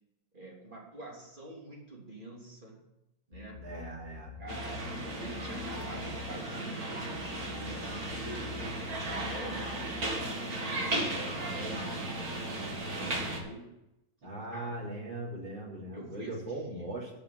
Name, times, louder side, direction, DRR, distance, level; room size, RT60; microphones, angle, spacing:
voice 1, 0.3-2.8 3.3-3.7 4.4-4.9 5.2-6.8 7.5-13.7 14.2-14.8 15.9-16.9, right 2 dB, 25° right, -3 dB, 3.2 m, -47 dB
sound 1, 3.3-11.0, left 8 dB, 70° left, 2.0 m, -47 dB
voice 2, 3.6-4.4 14.2-17.1, right 2 dB, 70° right, -4 dB, 4.0 m, -39 dB
sound 2, 4.5-13.4, right 1 dB, 50° right, 2.6 m, -35 dB
11.5 x 5.9 x 9.0 m, 0.91 s
omnidirectional pair, 2.1 m